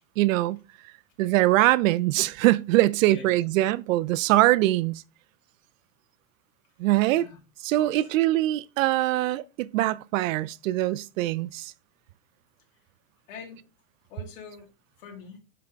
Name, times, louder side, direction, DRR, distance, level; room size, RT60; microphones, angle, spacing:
voice 1, 0.2-0.6 1.2-5.0 6.8-7.3 7.6-11.7, right 16 dB, 75° right, 0.5 m, -23 dB
voice 2, 7.7-8.1 13.3-13.6 14.1-14.7 15.0-15.4, left 6 dB, 65° left, 3.0 m, -44 dB
5.7 x 5.2 x 3.4 m
supercardioid pair, 150°, 41 cm